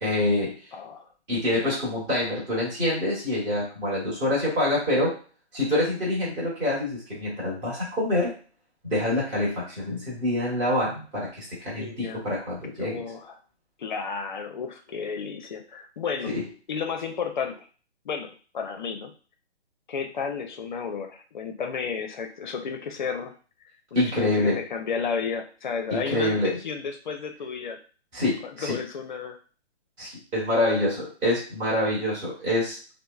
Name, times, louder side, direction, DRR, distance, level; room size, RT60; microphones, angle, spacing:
voice 1, 0.0-0.5 1.3-5.2 5.5-8.3 8.8-13.0 16.3-16.4 23.9-24.6 25.9-26.6 28.1-28.8 30.0-33.0, left 1 dB, 15° right, -6 dB, 1.0 m, -26 dB
voice 2, 0.7-1.1 11.7-12.2 12.8-13.4 13.8-16.3 16.7-17.7 18.0-19.1 19.9-23.3 23.9-27.8 28.6-29.4, left 6 dB, 45° left, 5 dB, 0.5 m, -32 dB
3.0 x 2.0 x 2.3 m, 0.38 s
hypercardioid pair, 150°, 34 cm